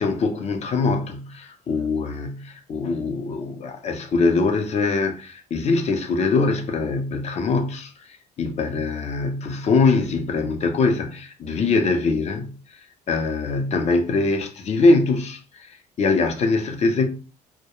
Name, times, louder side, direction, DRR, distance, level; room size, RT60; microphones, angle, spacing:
voice 1, 0.0-12.8 13.1-17.1, left 3 dB, 40° left, 0.5 m, -23 dB
2.3 x 2.1 x 2.9 m
cardioid pair, 110°, 17 cm